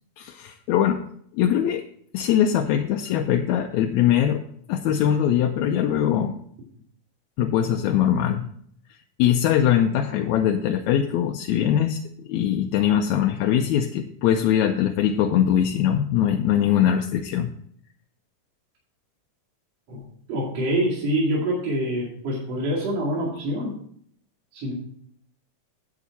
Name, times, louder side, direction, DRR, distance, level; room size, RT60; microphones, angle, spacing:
voice 1, 0.2-1.0 1.3-1.8 2.1-4.4 4.7-6.4 7.4-8.5 9.2-17.5, left 10 dB, 75° left, 3 dB, 1.8 m, -22 dB
voice 2, 19.9-23.7 24.5-24.7, right 1 dB, 55° right, -4 dB, 3.3 m, -26 dB
10.0 x 8.2 x 4.1 m, 0.64 s
omnidirectional pair, 3.7 m